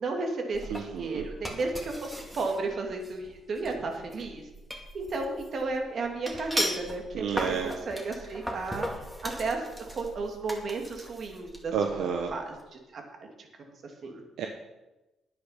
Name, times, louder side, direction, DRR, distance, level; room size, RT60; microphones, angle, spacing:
voice 1, 0.0-4.5 4.9-13.0 13.4-13.5 13.8-14.2, right 3 dB, 55° right, 2 dB, 2.6 m, -34 dB
sound 1, 0.5-12.6, equal, 5° right, 2.2 m, -38 dB
voice 2, 0.7-1.3 7.1-7.7 11.7-12.3 14.4-14.5, right 7 dB, 80° right, 3 dB, 1.0 m, -30 dB
10.0 x 9.4 x 5.9 m, 1.0 s
cardioid pair, 90°, 0 cm